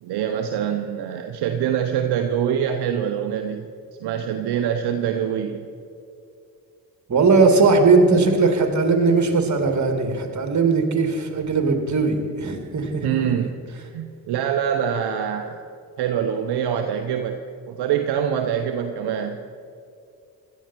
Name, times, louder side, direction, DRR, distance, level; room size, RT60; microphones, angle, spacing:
voice 1, 0.0-3.7 4.0-5.7 13.0-15.6 16.0-17.4 17.7-19.4, right 8 dB, 70° right, 6 dB, 1.0 m, -25 dB
voice 2, 7.1-13.4, right 4 dB, 45° right, 4 dB, 2.7 m, -19 dB
16.5 x 12.0 x 4.6 m, 2.5 s
hypercardioid pair, 45°, 41 cm